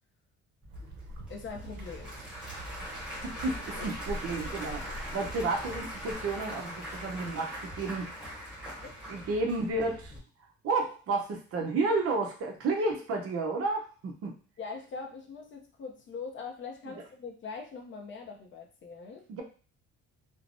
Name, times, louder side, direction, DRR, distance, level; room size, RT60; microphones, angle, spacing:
Applause / Crowd, 0.6-10.2, equal, 5° right, 1.1 m, -41 dB
sound 1, 0.7-6.2, right 1 dB, 90° right, 0.6 m, -44 dB
voice 1, 1.3-2.2 3.7-3.9 8.8-8.9 14.6-19.3, left 5 dB, 40° left, 2 dB, 0.5 m, -42 dB
voice 2, 3.2-8.1 8.5-8.6 9.1-10.1 10.6-14.4 19.3-19.4, right 3 dB, 50° right, 1 dB, 0.7 m, -31 dB
3.2 x 2.0 x 2.5 m, 0.37 s
cardioid pair, 155°, 30 cm